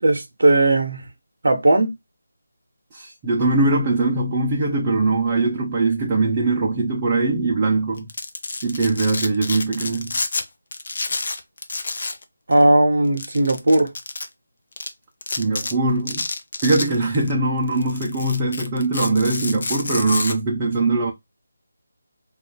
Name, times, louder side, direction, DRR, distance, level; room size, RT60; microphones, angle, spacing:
voice 1, 0.0-1.1 1.4-1.9 12.5-13.9, right 2 dB, 65° right, 0.6 m, -17 dB
voice 2, 2.9-8.1 8.6-10.2 15.4-16.3 16.6-21.1, right 3 dB, 15° right, 0.4 m, -21 dB
Domestic sounds home sounds, 8.0-10.4 10.7-12.2 12.5-12.6 13.2-14.3 14.8-14.9 15.2-15.7 16.1-17.3 17.7-20.3, left 3 dB, 50° left, 0.5 m, -29 dB
2.3 x 2.3 x 3.7 m
figure-of-eight pair, 170°, 0 cm